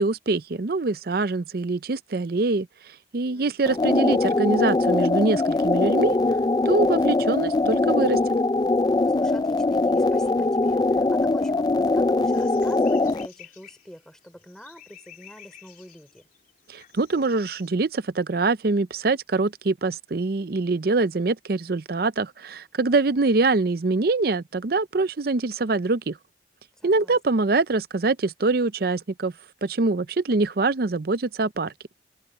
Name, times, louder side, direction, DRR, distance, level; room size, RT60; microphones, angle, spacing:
voice 1, 0.0-2.7 3.1-6.2 6.7-8.2 16.7-26.2 26.8-29.3 29.6-31.7, right 3 dB, 55° right, 0.6 m, -24 dB
voice 2, 3.3-3.9 9.1-16.2 26.8-27.2, equal, 5° left, 3.7 m, -46 dB
sound 1, 3.7-13.3, left 2 dB, 25° left, 0.3 m, -22 dB
sound 2, 12.3-17.7, left 9 dB, 50° left, 3.9 m, -51 dB
open air
head